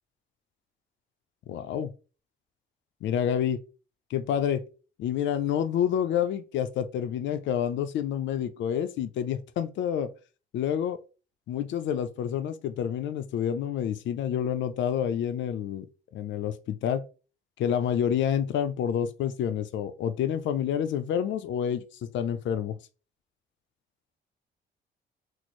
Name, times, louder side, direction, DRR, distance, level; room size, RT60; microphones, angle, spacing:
voice 1, 1.5-1.9 3.0-3.6 4.1-4.6 5.0-10.1 10.5-11.0 11.5-15.9 16.1-17.0 17.6-21.8 22.1-22.8, left 9 dB, 70° left, 0.4 m, -28 dB
3.0 x 2.0 x 4.1 m
cardioid pair, 90°, 20 cm